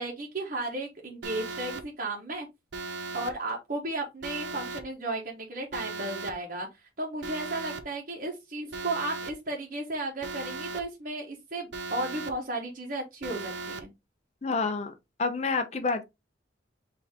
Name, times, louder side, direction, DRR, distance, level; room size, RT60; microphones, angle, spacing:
voice 1, 0.0-2.5 3.1-13.9, right 2 dB, 45° right, 1.1 m, -34 dB
Alarm, 1.2-1.8 2.7-3.3 4.2-4.8 5.7-6.3 7.2-7.8 8.7-9.3 10.2-10.8 11.7-12.3 13.2-13.8, right 3 dB, 75° right, 0.7 m, -37 dB
voice 2, 14.4-14.9 15.2-16.0, left 4 dB, 35° left, 0.6 m, -28 dB
4.5 x 2.8 x 3.4 m
head